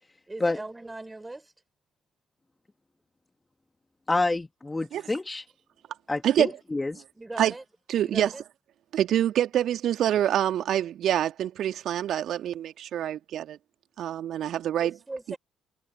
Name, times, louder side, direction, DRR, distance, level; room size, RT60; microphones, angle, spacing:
voice 1, 0.3-1.5 7.2-7.6 8.0-8.4 14.8-15.4, right 2 dB, 15° right, 6.6 m, -39 dB
voice 2, 4.1-5.5 6.1-7.0, left 2 dB, 20° left, 2.2 m, -28 dB
voice 3, 7.9-8.3 8.9-13.6 14.0-15.0 15.3-15.4, right 11 dB, 55° right, 2.4 m, -26 dB
figure-of-eight pair, 45°, 0 cm